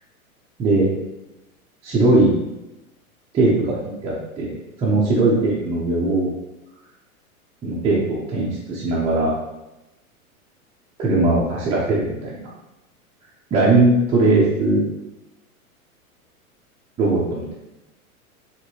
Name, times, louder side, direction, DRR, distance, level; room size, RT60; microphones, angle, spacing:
voice 1, 1.8-2.3 3.3-3.8 4.0-6.3 7.6-9.3 11.0-12.4 13.5-14.8 17.0-17.5, right 2 dB, 15° right, -8 dB, 0.6 m, -19 dB
4.8 x 2.9 x 2.8 m, 0.97 s
figure-of-eight pair, 100°, 44 cm